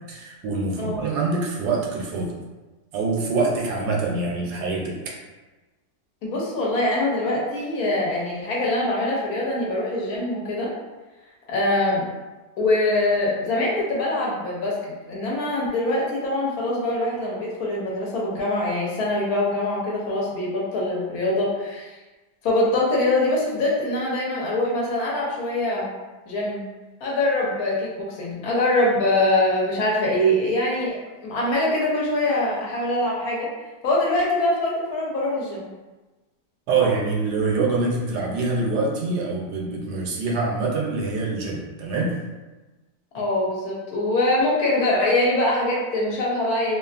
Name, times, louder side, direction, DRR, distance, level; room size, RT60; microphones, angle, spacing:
voice 1, 0.1-2.3 2.9-5.2 36.7-42.1, right 3 dB, 80° right, -1 dB, 1.1 m, -25 dB
voice 2, 6.2-10.7 11.5-12.0 12.6-22.0 22.4-25.9 26.3-26.7 27.0-30.9 31.2-33.5 33.8-35.7 43.1-46.8, left 1 dB, 70° left, -4 dB, 1.1 m, -23 dB
2.8 x 2.4 x 2.3 m, 1.2 s
omnidirectional pair, 1.8 m